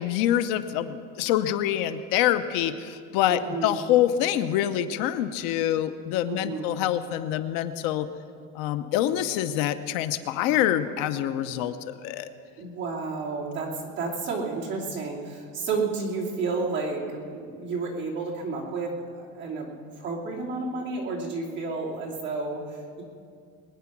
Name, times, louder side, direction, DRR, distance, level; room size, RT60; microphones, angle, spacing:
voice 1, 0.0-8.1 8.6-12.3, left 11 dB, 75° left, 11 dB, 0.8 m, -26 dB
voice 2, 3.3-3.7 6.3-6.7 12.6-19.7 20.0-23.0, right 3 dB, 30° right, -3 dB, 2.8 m, -31 dB
22.0 x 9.6 x 6.0 m, 2.4 s
cardioid pair, 165°, 34 cm